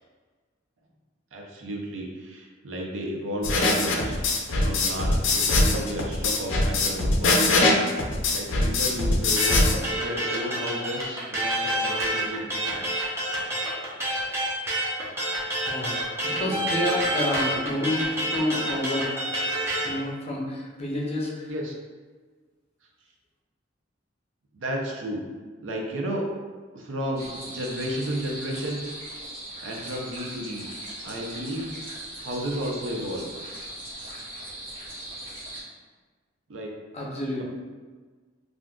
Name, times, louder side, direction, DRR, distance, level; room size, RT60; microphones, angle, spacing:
voice 1, 1.3-4.1 4.6-7.7 8.3-13.1 16.4-16.6 17.5-17.9 21.5-21.7 24.5-25.2 25.6-26.3 26.7-28.9 29.6-30.6 31.0-33.3 36.5-36.7, equal, 75° right, -1 dB, 0.5 m, -33 dB
sound 1, 3.4-9.8, left 2 dB, 75° left, 0.4 m, -22 dB
sound 2, 9.4-19.9, right 1 dB, 15° right, 0.7 m, -28 dB
voice 2, 15.7-16.0 16.2-19.2 19.8-21.5 36.9-37.4, left 1 dB, 35° left, -3 dB, 0.6 m, -29 dB
sound 3, 27.1-35.6, right 1 dB, 50° right, 1.5 m, -39 dB
3.5 x 2.5 x 2.3 m, 1.4 s
head